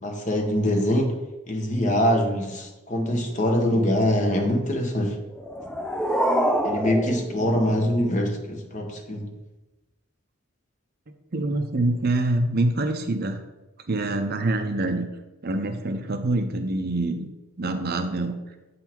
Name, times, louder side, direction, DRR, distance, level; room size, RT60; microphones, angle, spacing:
voice 1, 0.0-1.1 1.5-5.2 6.6-9.3, equal, 35° left, 3 dB, 0.9 m, -23 dB
sound 1, 5.3-8.3, equal, 5° left, 0.3 m, -26 dB
voice 2, 11.3-13.4 13.9-15.1 15.4-17.3 17.6-18.4, right 2 dB, 45° right, 6 dB, 0.6 m, -25 dB
8.0 x 4.1 x 4.4 m, 1.0 s
head